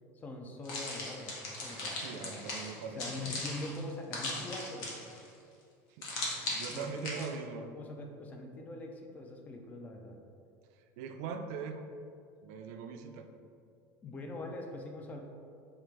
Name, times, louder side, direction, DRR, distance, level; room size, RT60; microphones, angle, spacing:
voice 1, 0.1-2.4 3.0-4.9 6.7-7.3 7.6-10.2 14.0-15.2, left 2 dB, 20° left, 3 dB, 0.3 m, -43 dB
sound 1, 0.6-5.3 6.0-7.3, left 2 dB, 55° left, 0.9 m, -38 dB
voice 2, 2.0-3.4 5.9-6.1 6.4-7.7 10.7-11.9 12.4-13.3, right 5 dB, 70° right, 6 dB, 0.3 m, -41 dB
4.8 x 2.5 x 3.1 m, 2.3 s
cardioid pair, 165°, 8 cm